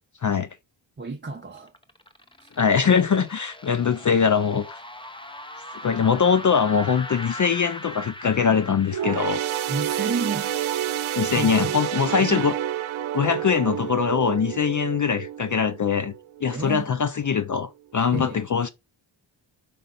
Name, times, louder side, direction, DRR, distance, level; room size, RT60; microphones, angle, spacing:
voice 1, 1.0-1.7 2.4-2.5 9.7-10.5 11.3-11.8 12.0-12.5 16.4-16.9 18.1-18.4, right 4 dB, 25° right, 0.7 m, -31 dB
sound 1, 1.4-9.1, left 1 dB, 10° left, 0.8 m, -39 dB
voice 2, 2.6-4.8 5.8-9.4 11.2-12.5 13.1-16.1 16.4-18.7, left 6 dB, 40° left, 0.5 m, -22 dB
sound 2, 8.9-16.6 17.0-17.2 18.1-18.2, right 11 dB, 80° right, 0.8 m, -29 dB
5.3 x 5.0 x 4.0 m
wide cardioid pair, 115°, 48 cm